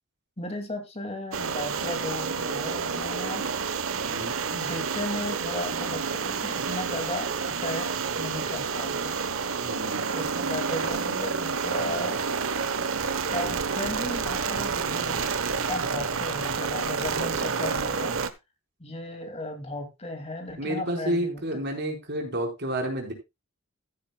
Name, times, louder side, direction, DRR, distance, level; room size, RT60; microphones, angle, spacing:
voice 1, 0.4-3.5 4.5-7.9 8.1-9.2 10.1-12.2 13.3-15.2 15.6-18.1 18.8-21.7, left 2 dB, 30° left, 5 dB, 2.4 m, -35 dB
sound 1, 1.3-18.3, right 5 dB, 75° right, 1.0 m, -29 dB
voice 2, 4.0-4.3 8.8-8.9 9.6-10.0 11.8-12.0 20.6-23.1, right 1 dB, 50° right, 2 dB, 4.3 m, -30 dB
14.5 x 10.5 x 2.3 m, 0.23 s
head